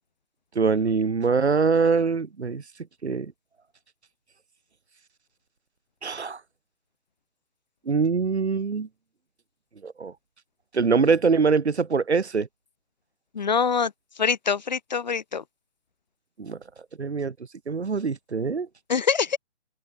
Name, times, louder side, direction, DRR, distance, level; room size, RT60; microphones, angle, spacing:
voice 1, 0.5-2.6 3.0-3.3 6.0-6.4 7.8-8.9 9.8-10.1 10.7-12.5 16.4-16.6 17.0-17.3 17.7-18.7, right 5 dB, 65° right, 3.4 m, -23 dB
voice 2, 13.3-13.9 14.2-15.4 18.9-19.4, left 6 dB, 40° left, 2.2 m, -24 dB
open air
hypercardioid pair, 175°, 35 cm